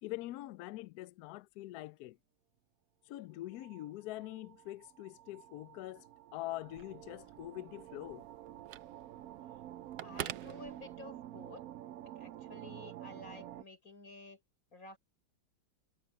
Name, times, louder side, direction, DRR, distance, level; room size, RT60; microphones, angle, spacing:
voice 1, 0.0-2.2 3.1-6.0 6.3-8.2, left 16 dB, 75° left, 0.9 m, -44 dB
sound 1, 3.4-13.6, right 12 dB, 85° right, 0.7 m, -50 dB
Telephone, 6.6-11.4, right 12 dB, 65° right, 1.1 m, -48 dB
voice 2, 10.0-11.6 12.0-14.4 14.7-15.0, left 3 dB, 45° left, 6.1 m, -52 dB
omnidirectional pair, 2.1 m